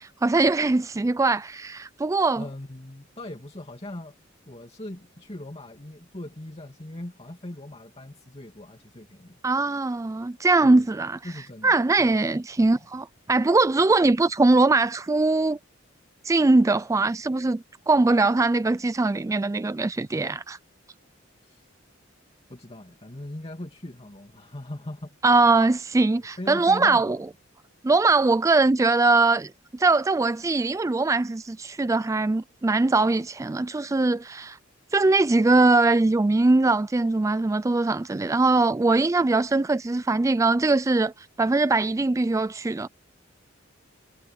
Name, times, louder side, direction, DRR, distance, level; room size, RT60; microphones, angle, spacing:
voice 1, 0.0-2.4 9.4-11.2 11.6-15.6 16.2-20.6 25.2-27.2 27.8-34.6 34.9-41.1 41.4-42.9, right 3 dB, 15° right, 0.3 m, -21 dB
voice 2, 2.3-4.2 4.5-9.4 10.6-11.0 11.2-12.2 12.6-12.9 21.4-21.7 22.5-25.2 26.4-27.2, left 1 dB, 30° left, 2.6 m, -40 dB
head